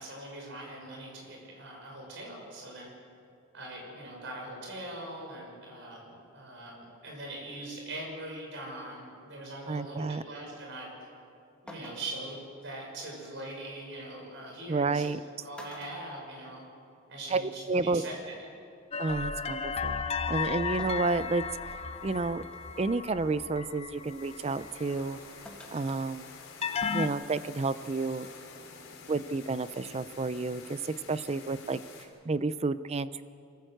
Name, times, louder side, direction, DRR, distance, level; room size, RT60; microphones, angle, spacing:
voice 1, 0.0-2.9 3.5-10.9 11.6-15.1 15.4-16.6 17.1-18.4, right 1 dB, 60° right, 0 dB, 6.3 m, -42 dB
voice 2, 9.7-10.2 14.7-15.2 17.3-18.0 19.0-21.4 22.0-22.4 22.8-25.2 25.7-26.3 26.9-28.3 29.1-31.8 32.3-33.2, right 3 dB, 30° right, 14 dB, 0.5 m, -30 dB
sound 1, 11.1-11.2 11.7-12.3 13.9-14.0 15.0-15.2 15.5-16.9 17.3-17.4 18.6-18.7 20.8-21.3 21.8-21.9 22.5-22.8 25.4-26.1 26.4-26.5, left 1 dB, 5° left, 1.9 m, -49 dB
sound 2, 18.9-25.1 26.6-27.1, left 5 dB, 30° left, 0.6 m, -34 dB
sound 3, 20.8-32.0, left 4 dB, 75° left, 3.5 m, -50 dB
25.0 x 14.5 x 7.9 m, 2.5 s
head